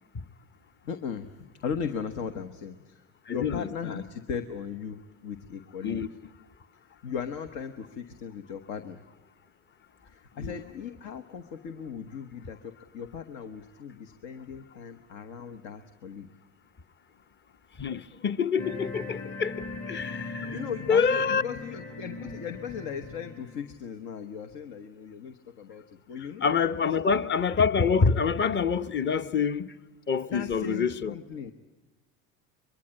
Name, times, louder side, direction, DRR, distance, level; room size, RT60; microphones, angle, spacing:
voice 1, 0.8-6.1 7.0-9.0 10.0-16.3 20.4-26.6 26.8-27.1 30.2-31.5, left 6 dB, 75° left, 1.2 m, -37 dB
voice 2, 3.3-4.0 5.8-6.1 10.4-10.6 17.8-20.6 20.9-21.4 26.4-29.7 30.1-31.1, left 5 dB, 30° left, 0.9 m, -26 dB
sound 1, 18.6-23.7, left 3 dB, 45° left, 4.9 m, -39 dB
23.0 x 22.5 x 8.7 m
supercardioid pair, 85°, 38 cm